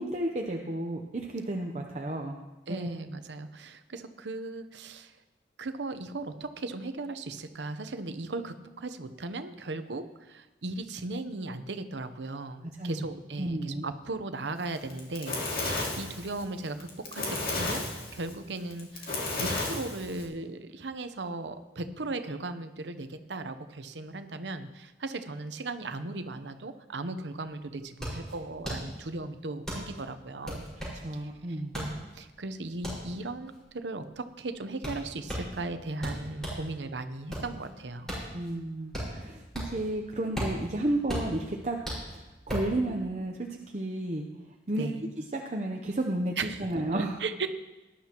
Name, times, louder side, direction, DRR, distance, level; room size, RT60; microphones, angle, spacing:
voice 1, 0.0-2.3 2.7-2.9 12.8-13.0 13.4-13.9 30.9-31.7 38.3-41.8 42.5-43.5 43.7-44.3 44.7-44.9 45.3-46.3 46.6-47.1, right 1 dB, 40° right, 2 dB, 0.7 m, -32 dB
voice 2, 2.7-5.1 5.6-30.7 31.1-38.2 44.8-45.0 46.4-46.7 46.9-47.5, right 2 dB, 85° right, 9 dB, 0.8 m, -37 dB
Fire, 14.8-20.3, left 2 dB, 55° left, 2.4 m, -33 dB
sound 1, 27.6-36.7 37.1-39.9 40.2-42.8, equal, 5° left, 5.1 m, -37 dB
19.0 x 11.0 x 3.0 m, 1.1 s
head